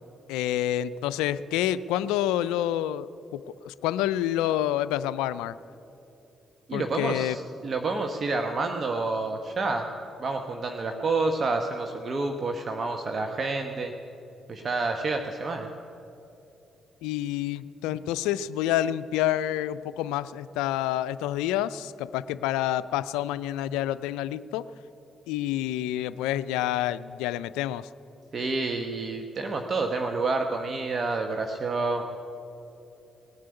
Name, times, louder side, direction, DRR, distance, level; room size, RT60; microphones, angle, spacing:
voice 1, 0.3-5.5 6.7-7.4 17.0-24.7 25.3-27.9, left 12 dB, 85° left, 16 dB, 0.3 m, -28 dB
voice 2, 6.7-9.8 10.2-13.9 14.5-15.7 28.3-32.0, right 3 dB, 50° right, 4 dB, 1.1 m, -29 dB
19.0 x 7.6 x 9.8 m, 2.9 s
hypercardioid pair, 50°, 0 cm